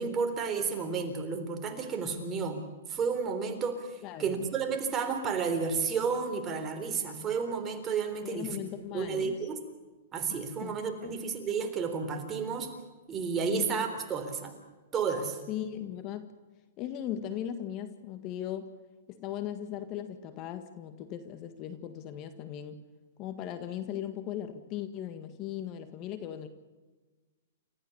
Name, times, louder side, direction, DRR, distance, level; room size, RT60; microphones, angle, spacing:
voice 1, 0.0-2.6 2.9-8.6 8.9-9.6 10.1-12.7 13.1-14.5 14.9-15.4, right 5 dB, 20° right, 5 dB, 3.8 m, -32 dB
voice 2, 4.0-4.5 8.2-9.4 10.6-10.7 11.0-11.2 13.5-13.8 15.5-16.2 16.8-18.7 19.1-22.8 23.2-26.5, left 10 dB, 35° left, 10 dB, 1.7 m, -38 dB
29.5 x 14.5 x 7.2 m, 1.3 s
hypercardioid pair, 140°, 0 cm